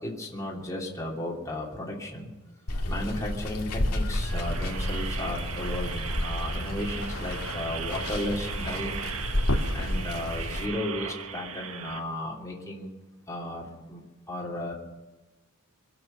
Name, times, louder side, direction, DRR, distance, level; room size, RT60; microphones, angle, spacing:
voice 1, 0.0-2.3 2.9-9.0 9.7-12.9 13.3-14.0 14.3-14.7, left 1 dB, 15° left, -3 dB, 2.9 m, -34 dB
Water, 2.7-10.6, left 1 dB, 85° left, 2.3 m, -31 dB
sound 1, 4.0-12.0, right 7 dB, 70° right, 1.4 m, -38 dB
23.5 x 8.0 x 7.3 m, 1.2 s
head